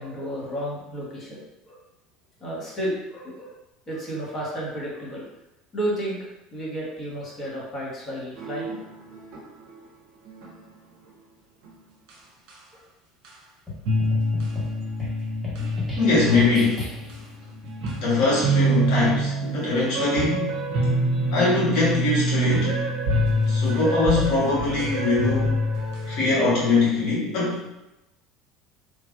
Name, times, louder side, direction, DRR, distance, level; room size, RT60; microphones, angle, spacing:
voice 1, 0.0-1.4 1.6-1.8 2.4-3.5 3.9-5.2 5.7-6.2 6.5-8.8 12.7-12.8, right 1 dB, 35° left, -5 dB, 1.3 m, -32 dB
sound 1, 8.4-9.4 9.7-9.8 10.3-10.5 11.6-11.7 12.1-12.2 12.5-12.6 13.2-13.3 13.9-26.3, right 1 dB, 65° right, 0.6 m, -26 dB
sound 2, 13.7-17.3, left 3 dB, 5° left, 1.1 m, -36 dB
voice 2, 16.0-16.9 18.0-20.6 21.3-22.7 23.5-25.5 26.1-27.7, left 3 dB, 60° left, -6 dB, 1.3 m, -22 dB
3.2 x 2.2 x 2.5 m, 0.93 s
hypercardioid pair, 70°, 0 cm